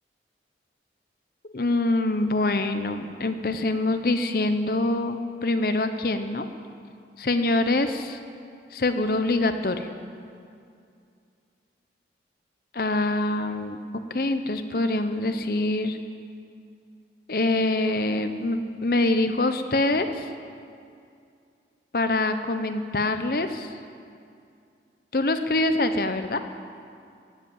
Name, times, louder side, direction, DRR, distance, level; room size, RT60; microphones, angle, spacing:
voice 1, 1.5-6.5 7.2-8.2 8.7-9.9 12.8-13.8 14.1-16.0 17.3-20.3 21.9-23.7 25.1-26.4, left 2 dB, 55° left, 8 dB, 0.8 m, -25 dB
16.5 x 8.2 x 8.8 m, 2.4 s
head